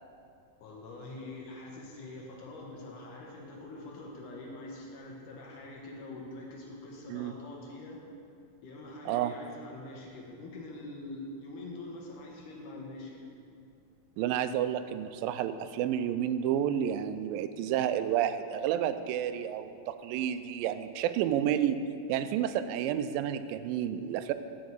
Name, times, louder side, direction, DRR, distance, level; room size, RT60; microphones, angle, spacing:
voice 1, 0.6-8.0 8.6-13.3, left 2 dB, 70° left, -1 dB, 2.6 m, -44 dB
voice 2, 14.2-21.8 22.1-24.3, right 10 dB, 85° right, 11 dB, 2.2 m, -30 dB
8.5 x 6.3 x 7.9 m, 2.4 s
omnidirectional pair, 4.0 m